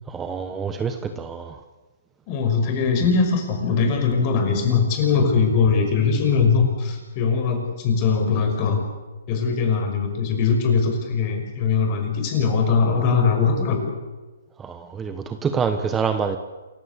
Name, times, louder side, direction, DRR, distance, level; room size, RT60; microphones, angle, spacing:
voice 1, 0.1-1.6 14.6-16.4, right 6 dB, 15° right, 8 dB, 1.1 m, -26 dB
voice 2, 2.3-8.8 9.3-13.8, left 5 dB, 35° left, 4 dB, 5.8 m, -21 dB
28.0 x 15.5 x 8.3 m, 1.2 s
hypercardioid pair, 150°, 0 cm